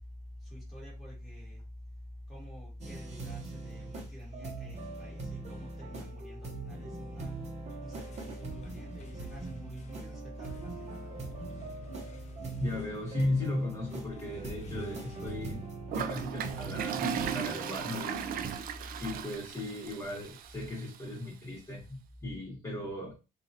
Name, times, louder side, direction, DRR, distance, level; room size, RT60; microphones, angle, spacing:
voice 1, 0.4-1.6 2.3-7.4 7.8-11.1, equal, ahead, 1.6 m, -45 dB
sound 1, 2.8-18.6, right 4 dB, 40° right, 0.9 m, -42 dB
sound 2, 7.6-16.1, left 6 dB, 45° left, 0.5 m, -56 dB
voice 2, 12.6-18.7 19.0-23.1, left 2 dB, 20° left, 1.5 m, -36 dB
Toilet flush, 15.9-21.0, right 8 dB, 60° right, 0.4 m, -37 dB
2.9 x 2.5 x 2.7 m
cardioid pair, 110°, 17 cm